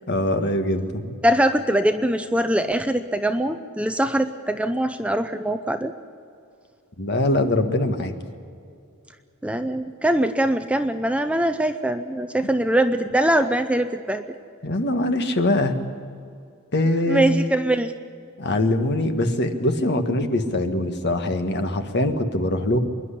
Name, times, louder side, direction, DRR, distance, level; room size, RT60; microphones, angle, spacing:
voice 1, 0.1-1.2 7.0-8.1 14.6-15.7 16.7-17.4 18.4-22.8, left 1 dB, 50° left, 7 dB, 1.6 m, -22 dB
voice 2, 1.2-5.9 9.4-14.2 17.1-17.9, right 1 dB, 5° right, 9 dB, 0.6 m, -22 dB
26.0 x 11.0 x 10.0 m, 2.4 s
head